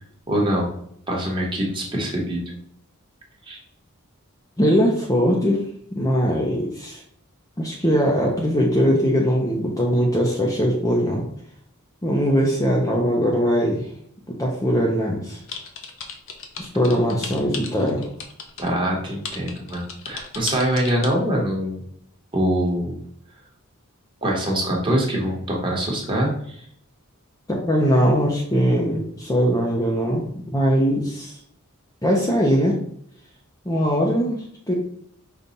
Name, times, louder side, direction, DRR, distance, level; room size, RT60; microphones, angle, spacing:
voice 1, 0.3-0.7 1.1-2.4 3.4-3.6 18.6-21.8 22.3-23.0 24.2-26.6, equal, 20° right, -2 dB, 1.2 m, -24 dB
voice 2, 4.6-5.7 5.9-7.0 7.6-11.3 12.0-13.9 14.3-15.4 16.6-18.1 27.5-31.4 32.0-32.8 33.7-34.7, equal, 15° left, -2 dB, 0.6 m, -21 dB
sound 1, 15.5-18.7 19.2-21.1, left 5 dB, 60° left, 0.7 m, -34 dB
5.3 x 2.4 x 4.0 m, 0.66 s
head